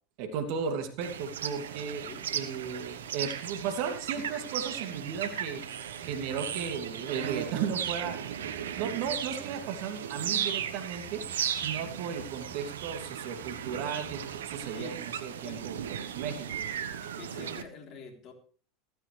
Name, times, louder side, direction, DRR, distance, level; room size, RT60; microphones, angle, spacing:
voice 1, 0.2-8.3 8.8-11.2 11.5-16.5, right 7 dB, 60° right, 6 dB, 2.6 m, -35 dB
sound 1, 1.0-17.6, right 9 dB, 80° right, 1.1 m, -36 dB
sound 2, 5.7-9.9 10.6-14.9, right 5 dB, 35° right, 2.1 m, -53 dB
voice 2, 16.2-16.6 17.0-18.3, left 6 dB, 45° left, 3 dB, 3.8 m, -47 dB
15.5 x 14.5 x 3.4 m, 0.42 s
hypercardioid pair, 90°, 0 cm